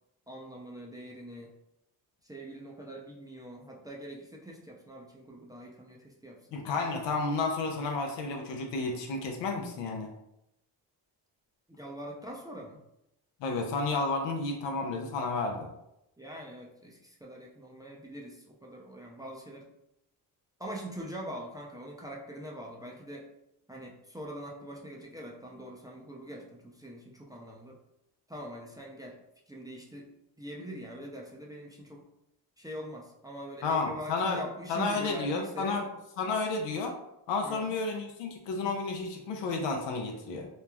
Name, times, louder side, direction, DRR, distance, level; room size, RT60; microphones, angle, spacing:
voice 1, 0.3-1.5 2.2-6.6 11.7-12.8 16.2-19.7 20.6-23.3 23.7-27.8 28.3-29.2 29.5-30.1 30.4-32.0 32.6-35.8 37.4-37.8, right 1 dB, 10° right, -1 dB, 0.4 m, -43 dB
voice 2, 6.5-10.1 13.4-15.7 33.6-34.4 34.7-35.9 36.2-36.9 37.3-40.5, left 3 dB, 75° left, 2 dB, 0.6 m, -31 dB
3.1 x 2.1 x 2.3 m, 0.83 s
supercardioid pair, 60°, 44 cm